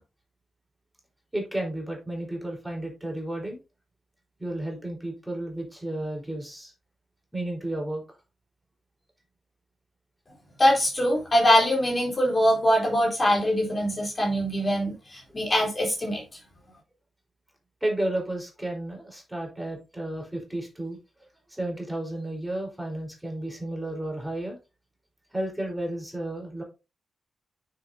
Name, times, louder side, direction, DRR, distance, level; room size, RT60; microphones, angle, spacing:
voice 1, 1.3-3.6 4.4-6.7 7.3-8.0 17.8-21.0 21.5-24.6 25.3-26.6, right 1 dB, 5° right, 0 dB, 4.1 m, -32 dB
voice 2, 10.6-16.2, equal, 30° left, -1 dB, 3.5 m, -23 dB
9.5 x 6.8 x 2.7 m, 0.27 s
cardioid pair, 90°, 0 cm